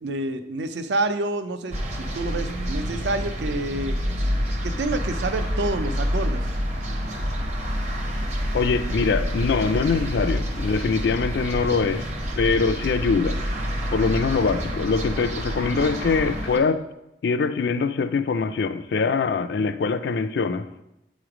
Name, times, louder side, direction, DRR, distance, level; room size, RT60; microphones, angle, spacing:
voice 1, 0.0-4.0 4.6-6.5, right 2 dB, 75° right, 0.5 m, -28 dB
sound 1, 1.7-16.6, equal, 40° right, 0.8 m, -28 dB
voice 2, 8.5-12.1 12.4-13.4 13.9-16.8 17.2-20.7, left 4 dB, 65° left, 0.4 m, -23 dB
7.7 x 3.1 x 4.9 m
head